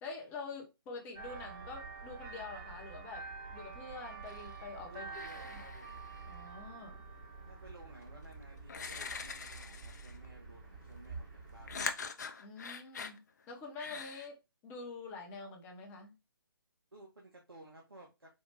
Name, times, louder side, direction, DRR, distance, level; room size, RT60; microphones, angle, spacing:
voice 1, 0.0-3.3 3.5-5.1 5.5-5.6 6.3-7.0 12.4-13.2 13.5-14.4 14.6-16.2, left 4 dB, 15° left, 0.8 m, -46 dB
sound 1, 1.1-11.9, right 4 dB, 20° right, 1.0 m, -48 dB
sound 2, 4.3-4.7 5.1-6.5 8.0-8.1 8.7-10.3 11.7-13.2 13.8-14.3, left 5 dB, 50° left, 0.5 m, -43 dB
voice 2, 4.9-6.0 7.5-12.1 16.9-18.3, right 1 dB, 80° right, 1.2 m, -56 dB
4.3 x 2.4 x 3.2 m
figure-of-eight pair, 140°, 12 cm